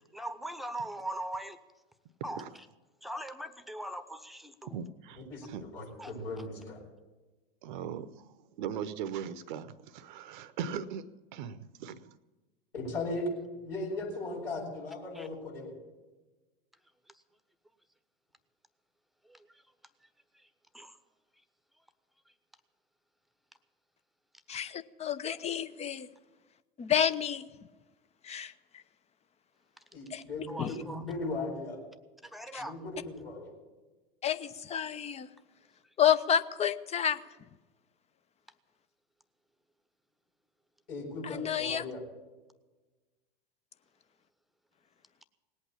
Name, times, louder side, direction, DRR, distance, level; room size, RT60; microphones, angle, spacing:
voice 1, 0.1-1.6 2.2-2.4 3.0-4.8 6.0-6.1 15.2-15.3 19.3-19.4 20.7-20.9 30.5-31.0 32.3-32.7, right 1 dB, ahead, 12 dB, 1.1 m, -40 dB
voice 2, 4.7-5.6 7.6-8.3 8.6-11.1 11.3-12.2, right 8 dB, 55° right, 14 dB, 0.9 m, -39 dB
voice 3, 5.3-6.8 12.7-13.3 13.6-15.8 29.9-31.8 32.6-33.5 40.9-42.0, left 2 dB, 75° left, -4 dB, 6.6 m, -38 dB
voice 4, 24.5-26.1 26.8-27.5 28.2-28.5 30.1-30.2 30.6-30.7 32.5-32.6 34.2-35.3 36.0-37.2 41.2-41.8, left 9 dB, 20° left, 12 dB, 0.7 m, -29 dB
19.0 x 8.5 x 8.5 m, 1.2 s
figure-of-eight pair, 90°, 29 cm